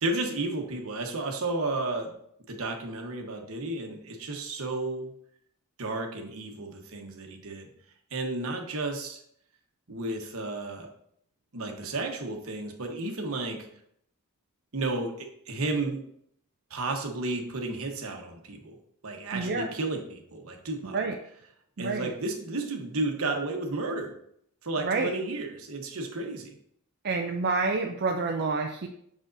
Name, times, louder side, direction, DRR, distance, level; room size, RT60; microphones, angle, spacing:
voice 1, 0.0-2.2 2.5-5.1 5.8-7.7 8.1-9.2 9.9-10.9 11.5-13.7 14.7-16.0 16.7-18.8 19.0-21.0 21.8-24.1 24.6-26.6, right 2 dB, 70° right, 3 dB, 1.1 m, -32 dB
voice 2, 19.3-19.7 20.9-21.2 21.8-22.1 24.8-25.1 27.0-28.9, right 4 dB, 50° right, 3 dB, 0.5 m, -28 dB
6.3 x 6.1 x 2.6 m, 0.69 s
head